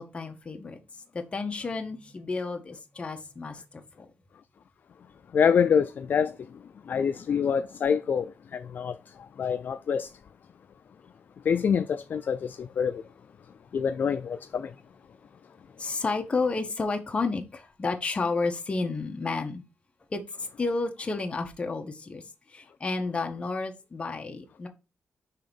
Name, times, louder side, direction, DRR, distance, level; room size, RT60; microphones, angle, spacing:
voice 1, 0.0-4.1 15.8-19.6 20.1-22.2 22.5-24.7, left 3 dB, 25° left, 1.1 m, -31 dB
voice 2, 5.3-6.3 6.9-8.3 8.5-8.9 9.4-10.1 11.5-13.0 13.7-14.7, left 7 dB, 50° left, 0.3 m, -25 dB
5.8 x 3.5 x 5.2 m
wide cardioid pair, 150°, 4 cm